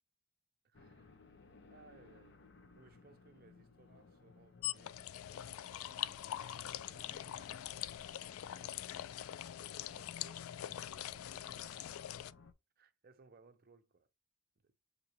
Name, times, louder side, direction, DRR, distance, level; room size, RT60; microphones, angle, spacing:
voice 1, 0.6-1.1 1.7-2.4 2.8-5.3 5.7-6.2 6.7-7.6 8.1-8.6 9.4-12.0 12.8-14.1 14.6-14.8, right 4 dB, 45° right, 0.6 m, -65 dB
sound 1, 0.7-12.5, left 4 dB, 55° left, 0.7 m, -58 dB
sound 2, 4.6-12.3, left 12 dB, 90° left, 0.3 m, -43 dB
6.7 x 2.7 x 2.9 m
head